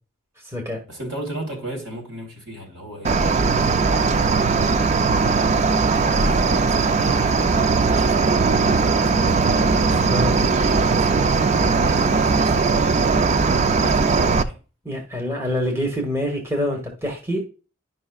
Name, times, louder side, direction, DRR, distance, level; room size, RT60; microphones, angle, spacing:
voice 1, 0.9-3.2 3.8-4.9 5.9-12.9 13.7-14.6, right 1 dB, 70° right, 3.3 m, -36 dB
Cricket, 3.0-14.4, right 4 dB, 35° right, 0.4 m, -19 dB
voice 2, 14.8-17.5, left 1 dB, 15° right, 1.3 m, -25 dB
11.0 x 5.5 x 2.3 m
head